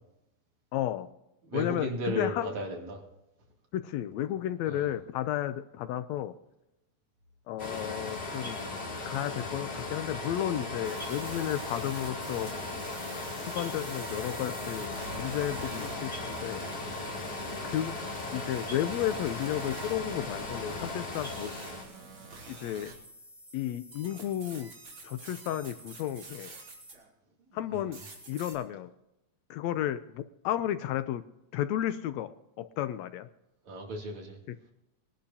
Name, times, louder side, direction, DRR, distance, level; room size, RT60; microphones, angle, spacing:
voice 1, 0.7-1.1 1.5-2.5 3.7-6.3 7.5-8.6 9.0-12.5 13.5-16.6 17.6-17.9 18.3-21.5 22.5-22.9 23.5-24.7 25.0-26.5 27.5-28.0 28.3-28.9 29.5-31.2 31.5-32.3 32.6-33.3 34.5-34.6, left 12 dB, 80° left, 12 dB, 1.8 m, -33 dB
voice 2, 1.5-3.0 4.7-4.9 27.7-27.9 33.7-34.4, right 1 dB, 70° right, 0 dB, 4.0 m, -35 dB
sound 1, 7.6-21.8, left 2 dB, 35° left, 3.1 m, -37 dB
sound 2, 10.8-27.1 27.5-28.5, right 2 dB, 40° right, 3.5 m, -46 dB
21.5 x 11.5 x 2.8 m, 0.91 s
omnidirectional pair, 3.3 m